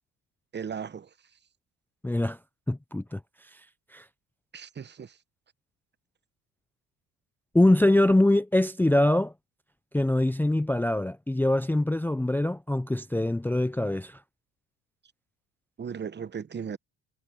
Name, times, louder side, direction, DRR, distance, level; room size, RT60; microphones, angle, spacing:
voice 1, 0.5-1.1 4.5-5.2 15.8-16.8, right 7 dB, 30° right, 0.9 m, -36 dB
voice 2, 2.0-2.4 2.7-3.2 3.9-4.0 7.5-9.3 9.9-14.2, left 1 dB, 5° left, 0.6 m, -23 dB
supercardioid pair, 85°, 38 cm